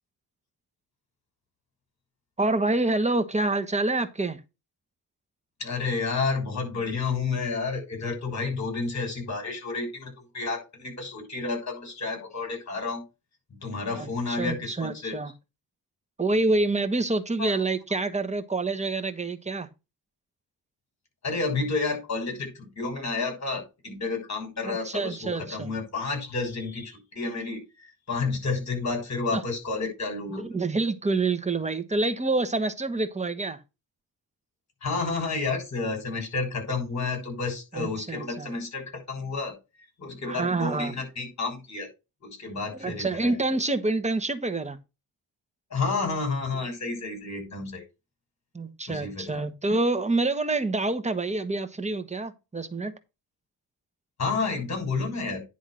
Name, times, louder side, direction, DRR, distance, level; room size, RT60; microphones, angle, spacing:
voice 1, 2.4-4.4 14.0-15.3 16.2-19.7 24.7-25.7 29.3-29.4 30.3-33.6 37.7-38.5 40.3-40.9 42.8-44.8 48.5-53.0, right 2 dB, 20° right, 1.3 m, -27 dB
voice 2, 5.6-13.0 13.6-15.2 17.4-17.5 21.2-30.4 34.8-41.9 42.2-43.4 45.7-47.8 48.9-49.5 54.2-55.4, left 4 dB, 50° left, 6.5 m, -30 dB
10.0 x 3.7 x 6.3 m
cardioid pair, 90°, 36 cm